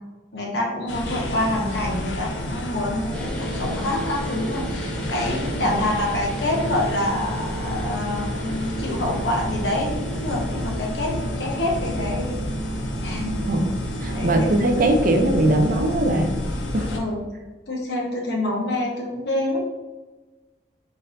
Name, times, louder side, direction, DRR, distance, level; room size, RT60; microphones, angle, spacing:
voice 1, 0.3-12.4 13.0-13.3 14.1-14.5 16.9-17.2 17.7-19.6, left 1 dB, 65° left, -2 dB, 1.0 m, -26 dB
sound 1, 0.9-17.0, left 1 dB, 85° left, 0.6 m, -30 dB
sound 2, 3.1-14.8, right 2 dB, 5° left, 0.6 m, -35 dB
voice 2, 13.5-16.3 16.7-16.9, right 1 dB, 50° right, 4 dB, 0.5 m, -21 dB
3.9 x 3.8 x 2.6 m, 1.2 s
head